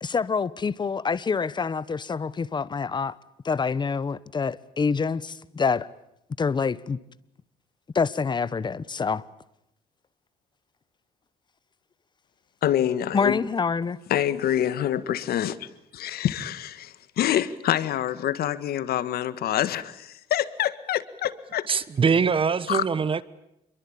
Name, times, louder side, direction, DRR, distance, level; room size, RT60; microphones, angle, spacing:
voice 1, 0.0-3.2 3.4-5.9 6.4-7.0 7.9-9.2 13.1-14.0, left 5 dB, 25° left, 1.1 m, -26 dB
voice 2, 12.6-13.4 14.1-15.7 15.9-21.7 22.7-22.8, left 11 dB, 65° left, 1.8 m, -26 dB
voice 3, 21.7-23.2, right 5 dB, 30° right, 1.3 m, -23 dB
28.0 x 23.0 x 8.7 m
cardioid pair, 110°, 17 cm